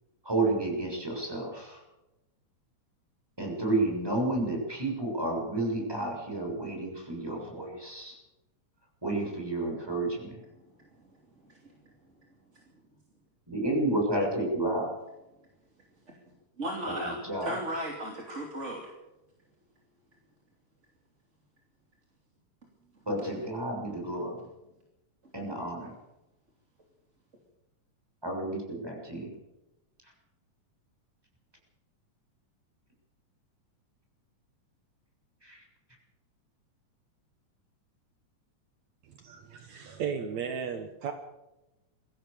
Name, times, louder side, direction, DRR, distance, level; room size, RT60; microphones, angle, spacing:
voice 1, 0.2-1.8 3.4-8.2 9.0-10.4 13.5-14.9 17.0-17.6 23.0-24.5 25.3-25.9 28.2-29.3 35.4-35.6, right 2 dB, 5° right, 0 dB, 6.8 m, -31 dB
voice 2, 16.6-18.8, right 1 dB, 25° right, 1 dB, 2.7 m, -35 dB
voice 3, 39.0-41.1, right 7 dB, 65° right, 6 dB, 2.6 m, -35 dB
23.5 x 16.0 x 6.9 m, 1.0 s
omnidirectional pair, 3.5 m